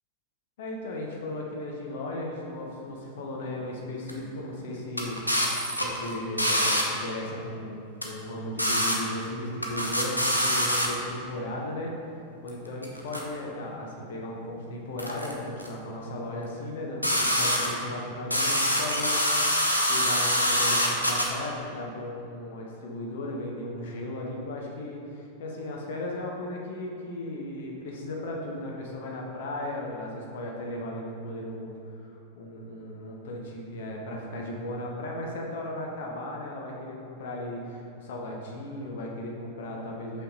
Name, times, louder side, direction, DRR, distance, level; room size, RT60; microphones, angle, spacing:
voice 1, 0.6-5.2 5.8-12.0 12.4-19.6 19.9-40.2, left 1 dB, 55° left, -1 dB, 1.0 m, -36 dB
sound 1, 4.1-4.2 5.0-6.8 8.0-8.1 8.6-8.9 9.2-9.3 9.6-10.9 12.5-12.6 12.8-13.2 15.0-15.3 15.6-15.7 17.0-17.8 18.3-21.2, equal, 90° left, 0.7 m, -25 dB
5.6 x 5.6 x 4.1 m, 2.5 s
figure-of-eight pair, 90°, 0 cm